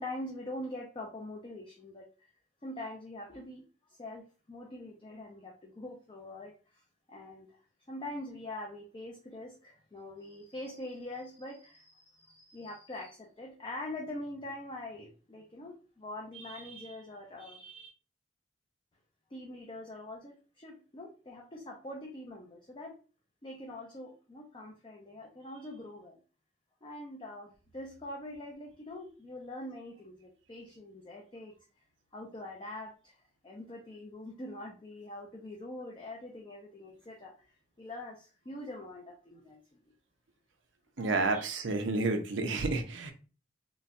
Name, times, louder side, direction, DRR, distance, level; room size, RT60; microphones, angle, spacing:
voice 1, 0.0-2.3 2.6-6.8 7.1-7.6 7.9-17.9 19.3-23.0 23.4-26.2 26.8-31.5 32.1-39.8 41.0-41.4 42.4-42.6, left 1 dB, 25° left, -1 dB, 0.5 m, -44 dB
voice 2, 41.0-43.1, right 3 dB, 80° right, 6 dB, 0.6 m, -30 dB
3.9 x 2.1 x 2.5 m, 0.36 s
head